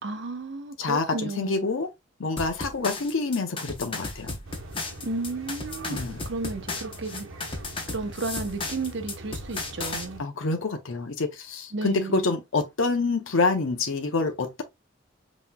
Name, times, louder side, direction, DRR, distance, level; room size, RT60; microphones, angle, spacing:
voice 1, 0.0-1.7 5.0-6.0 6.2-7.6 7.9-10.2 11.7-12.2, right 3 dB, 60° right, 0.8 m, -33 dB
voice 2, 0.8-1.9 2.2-4.4 5.9-6.2 10.2-14.6, left 3 dB, 75° left, 0.7 m, -27 dB
sound 1, 2.4-10.1, left 3 dB, 25° left, 0.7 m, -35 dB
sound 2, 4.4-10.2, right 1 dB, 80° right, 1.0 m, -43 dB
5.6 x 3.0 x 2.2 m
head